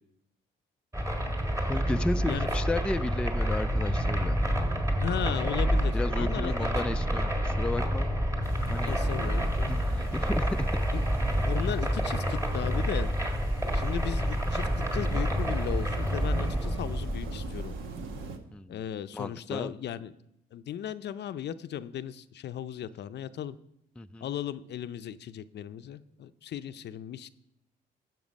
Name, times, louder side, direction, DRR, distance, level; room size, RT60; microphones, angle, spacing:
sound 1, 0.9-18.3, equal, 15° right, 1.6 m, -28 dB
voice 1, 1.7-4.4 5.9-8.1 8.6-8.9 9.7-10.8 18.5-18.8 19.1-19.7 24.0-24.3, left 2 dB, 5° left, 9 dB, 0.3 m, -33 dB
voice 2, 5.0-6.7 8.8-9.7 10.9-11.1 11.5-13.1 13.7-17.7 18.7-20.1 20.5-23.6 24.2-27.3, left 10 dB, 60° left, 13 dB, 0.5 m, -36 dB
sound 2, 8.4-18.4, right 4 dB, 90° right, 1.1 m, -46 dB
14.5 x 5.9 x 5.3 m, 0.81 s
cardioid pair, 90°, 20 cm